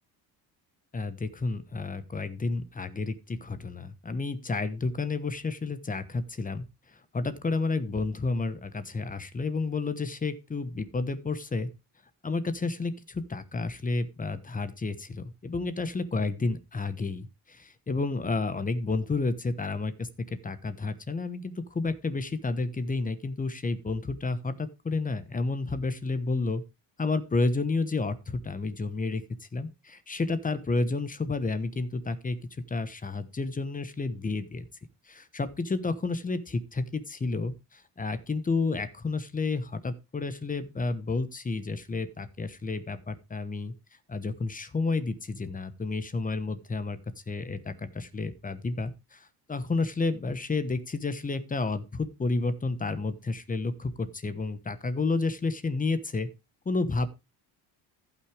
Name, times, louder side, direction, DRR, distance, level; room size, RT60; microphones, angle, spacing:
voice 1, 0.9-11.7 12.2-26.6 27.0-34.6 35.1-43.7 44.1-47.0 47.3-56.3 56.6-57.1, left 3 dB, 20° left, 12 dB, 1.1 m, -31 dB
15.0 x 6.0 x 3.3 m, 0.26 s
cardioid pair, 120°, 42 cm